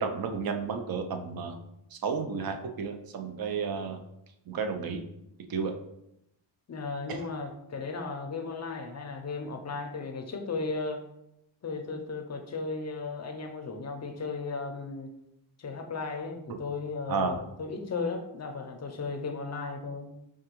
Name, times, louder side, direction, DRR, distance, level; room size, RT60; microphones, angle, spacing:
voice 1, 0.0-1.6 1.9-4.0 4.5-5.0 5.5-5.7 16.5-16.6 17.1-17.4, right 5 dB, 50° right, 6 dB, 0.6 m, -32 dB
voice 2, 6.7-11.0 11.6-15.1 15.6-20.1, left 4 dB, 35° left, 5 dB, 0.5 m, -35 dB
4.5 x 2.3 x 2.9 m, 0.83 s
cardioid pair, 80°, 46 cm